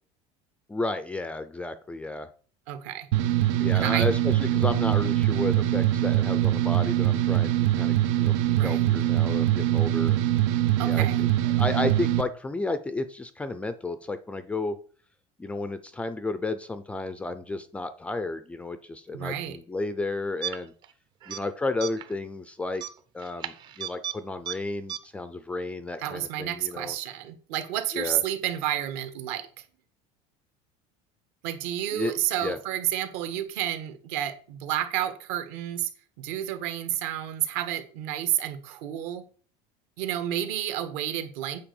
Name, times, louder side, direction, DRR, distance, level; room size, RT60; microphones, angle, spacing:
voice 1, 0.7-2.3 3.6-10.2 10.8-14.8 15.4-20.7 21.3-22.8 23.1-27.0 27.9-28.2 31.9-32.1 32.4-32.6, left 2 dB, 10° left, 12 dB, 0.4 m, -32 dB
voice 2, 2.7-3.1 3.7-4.1 8.5-8.8 10.8-11.3 19.1-19.6 26.0-29.6 31.4-35.9 36.2-39.2 40.0-41.6, right 12 dB, 65° right, 9 dB, 1.5 m, -30 dB
sound 1, 3.1-12.2, right 13 dB, 80° right, 0.9 m, -23 dB
sound 2, 20.4-20.9 21.2-21.4 21.8-22.1 22.7-24.2 24.5-24.6 24.9-25.0, right 9 dB, 30° right, 0.7 m, -34 dB
8.8 x 4.2 x 7.0 m, 0.42 s
cardioid pair, 175°, 15 cm